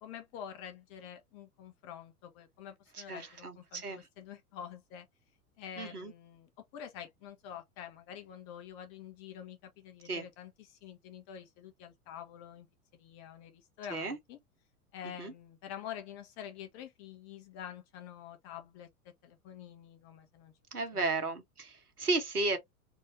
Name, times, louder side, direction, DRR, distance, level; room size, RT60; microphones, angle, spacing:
voice 1, 0.0-5.1 5.6-12.7 13.0-14.4 14.9-18.9 19.2-20.5 20.9-21.3, left 9 dB, 45° left, 1.5 m, -47 dB
voice 2, 2.9-4.0 5.8-6.1 10.0-10.2 13.9-14.2 15.2-15.3 20.7-22.6, right 3 dB, 85° right, 1.6 m, -34 dB
4.2 x 2.8 x 3.1 m
figure-of-eight pair, 90°, 44 cm